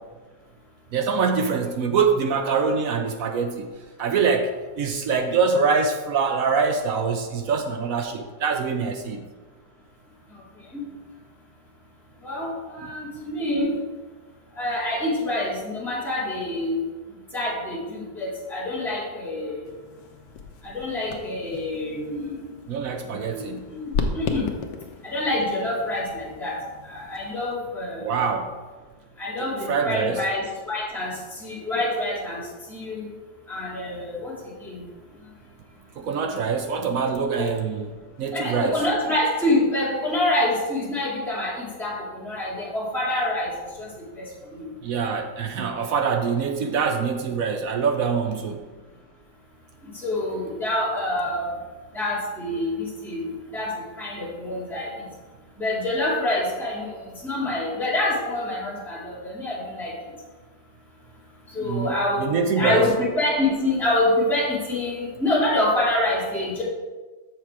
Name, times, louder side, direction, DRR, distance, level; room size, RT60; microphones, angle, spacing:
voice 1, 0.9-3.7 4.0-9.2 22.7-23.6 28.0-28.5 29.4-30.2 36.0-38.8 44.8-48.6 61.6-62.9, right 5 dB, 65° right, 6 dB, 0.9 m, -24 dB
voice 2, 12.2-13.7 14.5-16.8 17.3-19.7 20.6-22.5 23.0-24.5 25.0-26.5 26.8-28.2 29.2-32.4 32.7-33.0 33.5-34.8 37.4-37.5 38.3-43.5 43.8-43.9 44.1-44.7 49.8-51.6 51.9-53.7 54.0-54.9 55.6-59.9 61.5-66.6, left 1 dB, ahead, -7 dB, 2.1 m, -26 dB
sound 1, 19.6-27.4, left 5 dB, 85° left, 1.4 m, -35 dB
6.8 x 6.6 x 4.7 m, 1.3 s
omnidirectional pair, 1.8 m